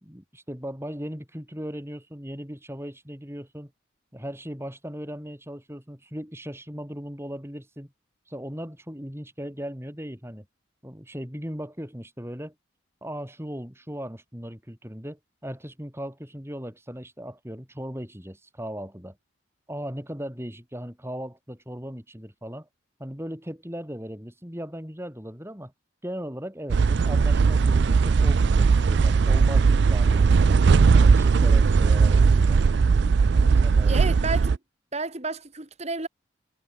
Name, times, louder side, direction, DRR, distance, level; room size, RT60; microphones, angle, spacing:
voice 1, 0.0-3.7 4.1-7.9 8.3-10.5 10.8-12.5 13.0-19.2 19.7-22.7 23.0-25.7 26.0-30.6 31.0-32.6 33.4-34.0, equal, 10° right, 5.5 m, -37 dB
sound 1, 26.7-34.6, right 5 dB, 55° right, 0.4 m, -19 dB
voice 2, 33.8-34.6 34.9-36.1, right 3 dB, 35° right, 2.1 m, -31 dB
head